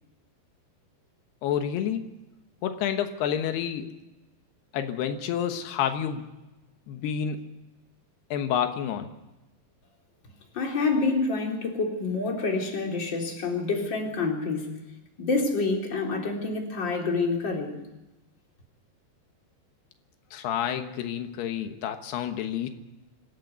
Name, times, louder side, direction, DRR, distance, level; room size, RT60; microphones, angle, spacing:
voice 1, 1.4-2.0 2.6-3.9 4.7-6.3 6.9-7.4 8.3-9.1 20.3-22.7, left 9 dB, 85° left, 7 dB, 3.3 m, -29 dB
voice 2, 10.5-14.7 15.2-17.7, left 3 dB, 30° left, 1 dB, 4.1 m, -27 dB
25.5 x 15.0 x 8.2 m, 1.0 s
omnidirectional pair, 4.6 m